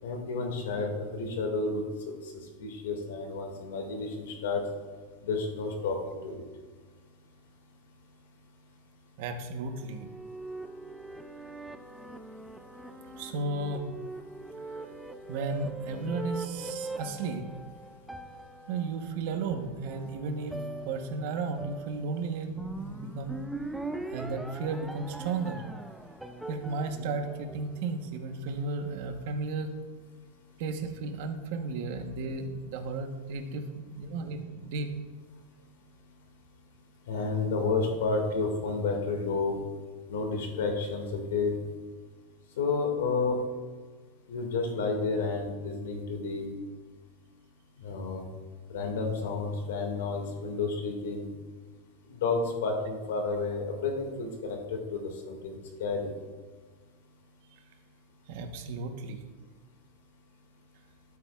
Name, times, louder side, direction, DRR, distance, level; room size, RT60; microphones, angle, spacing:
voice 1, 0.0-2.2 2.6-4.6 5.2-6.4 37.1-39.6 40.1-41.5 42.6-43.4 44.3-46.5 47.8-48.2 48.7-51.3 52.1-55.5 55.8-56.1, left 4 dB, 85° left, 2 dB, 2.0 m, -31 dB
voice 2, 9.2-10.1 13.2-13.9 15.3-17.5 18.7-20.6 20.8-23.5 24.1-25.6 26.5-29.7 30.6-34.9 58.3-59.2, right 4 dB, 55° right, 6 dB, 1.1 m, -34 dB
sound 1, 9.6-28.2, right 2 dB, 5° right, 0.3 m, -42 dB
12.5 x 8.4 x 2.4 m, 1.4 s
supercardioid pair, 165°, 0 cm